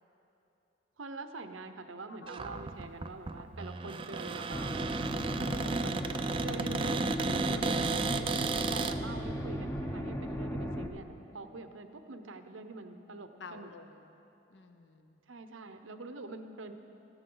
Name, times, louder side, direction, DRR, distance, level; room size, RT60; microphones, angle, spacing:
voice 1, 1.0-4.8 5.4-13.7 15.3-16.7, right 3 dB, 85° right, 8 dB, 0.8 m, -45 dB
Cupboard open or close, 2.3-9.0, right 4 dB, 25° right, 0.4 m, -34 dB
sound 1, 4.5-10.9, equal, 10° left, 0.7 m, -36 dB
voice 2, 5.0-5.6 13.4-14.0 14.5-15.2, left 3 dB, 65° left, 8 dB, 0.8 m, -51 dB
18.5 x 14.5 x 3.9 m, 3.0 s
head